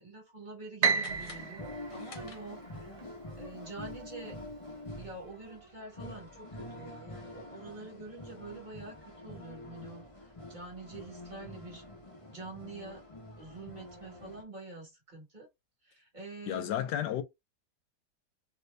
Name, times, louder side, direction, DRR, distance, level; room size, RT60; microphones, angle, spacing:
voice 1, 0.0-2.9 3.4-4.4 5.0-11.8 12.3-13.0 13.4-15.5 15.8-16.7, right 3 dB, 30° right, 1.3 m, -46 dB
Piano, 0.8-3.1, right 5 dB, 75° right, 1.1 m, -32 dB
sound 1, 1.0-2.9, left 4 dB, 55° left, 1.4 m, -53 dB
sound 2, 1.1-14.4, left 1 dB, 25° left, 0.9 m, -46 dB
voice 2, 16.5-17.2, left 11 dB, 85° left, 1.2 m, -32 dB
3.0 x 2.5 x 3.2 m
omnidirectional pair, 1.8 m